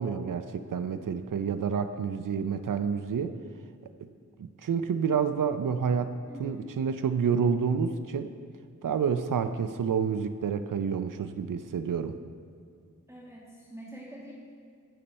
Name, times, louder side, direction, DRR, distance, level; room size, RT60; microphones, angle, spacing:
voice 1, 0.0-3.3 4.4-6.1 6.4-8.3 8.8-12.2, right 6 dB, 75° right, 10 dB, 0.6 m, -29 dB
voice 2, 6.3-6.7 13.1-14.3, right 1 dB, 10° right, -5 dB, 2.1 m, -44 dB
20.0 x 6.8 x 4.3 m, 2.2 s
wide cardioid pair, 70°, 32 cm